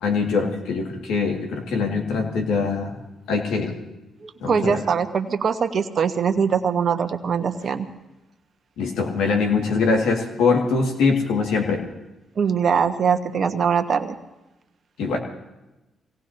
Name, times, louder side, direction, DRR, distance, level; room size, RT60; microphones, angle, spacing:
voice 1, 0.0-2.9 3.3-3.8 4.4-4.8 8.8-11.8 15.0-15.2, left 4 dB, 80° left, 2 dB, 2.2 m, -22 dB
voice 2, 4.2-7.9 12.4-14.2, right 6 dB, 55° right, 7 dB, 1.3 m, -22 dB
25.0 x 18.0 x 2.9 m, 0.99 s
supercardioid pair, 50°, 0 cm